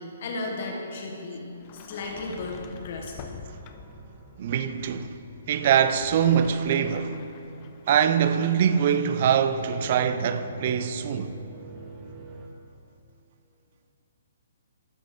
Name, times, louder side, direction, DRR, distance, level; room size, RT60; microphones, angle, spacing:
voice 1, 0.0-1.5 1.7-3.1, left 2 dB, 50° left, 1.4 m, -34 dB
Sliding door, 1.6-4.1 5.7-8.9, left 7 dB, 30° left, 0.4 m, -46 dB
sound 1, 2.1-12.5, right 2 dB, 15° right, 0.9 m, -47 dB
voice 2, 4.4-5.1 5.5-7.2 7.9-11.3, right 8 dB, 45° right, 0.4 m, -23 dB
13.0 x 5.1 x 3.6 m
figure-of-eight pair, 125°, 0 cm